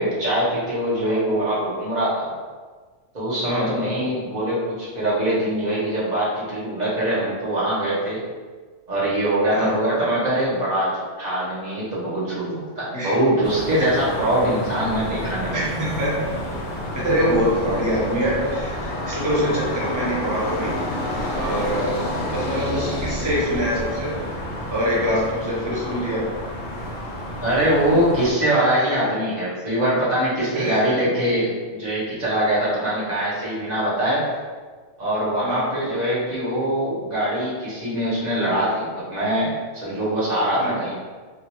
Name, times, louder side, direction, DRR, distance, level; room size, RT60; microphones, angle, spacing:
voice 1, 0.0-2.3 3.1-8.2 8.9-10.9 11.2-15.5 27.4-31.5 31.8-34.2 35.0-40.9, right 1 dB, 35° right, -8 dB, 1.2 m, -23 dB
sound 1, 13.4-28.3, left 1 dB, 50° left, 0.7 m, -29 dB
voice 2, 15.5-16.2 16.9-20.8 21.3-21.9 22.3-24.1 24.7-26.3 28.6-28.8 30.5-30.8 35.4-35.6 40.6-40.8, equal, 20° right, -7 dB, 0.7 m, -24 dB
3.6 x 2.5 x 3.0 m, 1.5 s
omnidirectional pair, 1.3 m